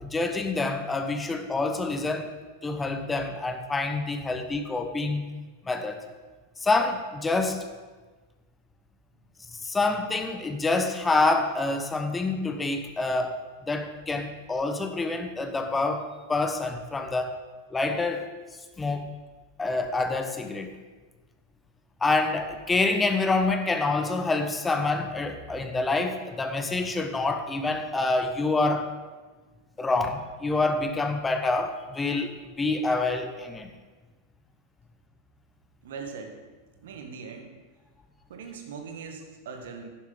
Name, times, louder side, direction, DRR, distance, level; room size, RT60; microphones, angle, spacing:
voice 1, 0.0-2.3 2.6-5.3 5.7-6.0 6.6-7.6 9.6-13.4 13.7-17.3 17.7-18.3 18.8-19.1 19.6-20.7 22.0-28.9 29.8-32.3 32.6-33.7, left 3 dB, 15° left, 7 dB, 1.0 m, -27 dB
voice 2, 35.8-36.4 36.8-37.5 38.3-39.9, right 5 dB, 60° right, 4 dB, 1.5 m, -40 dB
11.0 x 10.5 x 3.9 m, 1.3 s
figure-of-eight pair, 90°, 0 cm